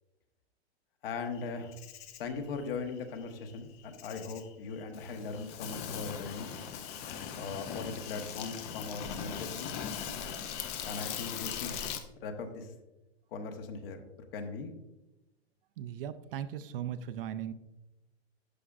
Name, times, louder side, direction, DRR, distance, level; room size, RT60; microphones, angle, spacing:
voice 1, 1.0-1.7 2.2-6.5 7.3-9.7 10.8-11.8 12.2-12.7 13.3-14.0 14.3-14.7, left 4 dB, 60° left, 6 dB, 1.2 m, -39 dB
Insect, 1.3-12.0, left 8 dB, 20° left, 0.3 m, -40 dB
voice 2, 15.8-17.5, right 10 dB, 60° right, 12 dB, 0.5 m, -38 dB
11.5 x 5.0 x 2.4 m, 0.97 s
hypercardioid pair, 135°, 32 cm